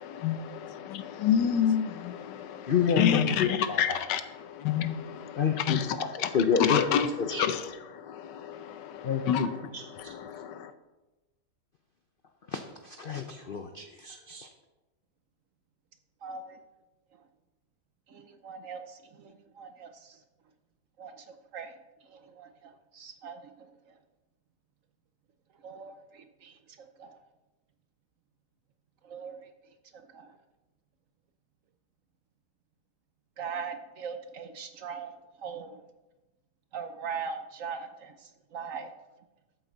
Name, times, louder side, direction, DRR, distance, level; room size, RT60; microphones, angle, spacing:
voice 1, 0.0-6.3 6.6-10.7, left 8 dB, 85° left, 1.4 m, -29 dB
voice 2, 2.7-4.0 5.4-6.1 6.3-6.8 7.2-7.5 9.0-9.5 9.7-10.1 12.5-14.5, left 6 dB, 65° left, 0.5 m, -29 dB
voice 3, 16.2-16.6 18.1-20.1 21.0-21.2 21.5-21.7 22.1-23.4 25.6-26.5 27.0-27.1 29.0-29.4 30.1-30.3 33.4-35.1 35.4-35.8 36.7-38.1 38.5-38.9, right 6 dB, 60° right, 1.0 m, -40 dB
13.0 x 8.0 x 3.9 m
omnidirectional pair, 1.8 m